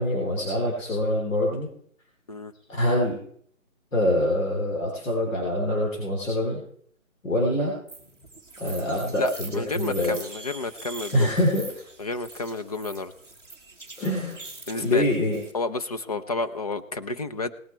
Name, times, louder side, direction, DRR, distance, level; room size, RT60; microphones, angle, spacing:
voice 1, 0.0-1.7 2.7-3.2 3.9-6.6 7.2-7.7 8.6-10.2 11.1-11.8 14.0-14.4 14.8-15.4, left 1 dB, 65° left, -1 dB, 3.6 m, -25 dB
sound 1, 7.9-15.5, right 3 dB, 5° left, 1.5 m, -43 dB
voice 2, 9.2-11.3 12.0-13.1 14.7-15.1 15.5-17.5, left 3 dB, 30° left, 10 dB, 0.6 m, -31 dB
18.5 x 8.8 x 4.5 m, 0.63 s
figure-of-eight pair, 155°, 41 cm